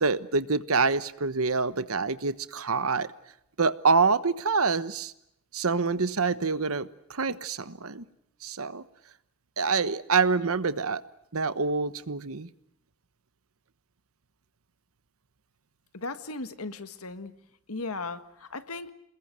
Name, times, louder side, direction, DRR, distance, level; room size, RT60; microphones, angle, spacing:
voice 1, 0.0-3.1 3.6-5.1 5.5-8.0 8.4-8.8 9.6-11.0 11.3-12.5, right 4 dB, 75° right, 14 dB, 1.2 m, -26 dB
voice 2, 15.9-17.3 17.7-18.9, left 3 dB, 90° left, 10 dB, 1.8 m, -36 dB
29.0 x 21.0 x 7.9 m, 0.78 s
head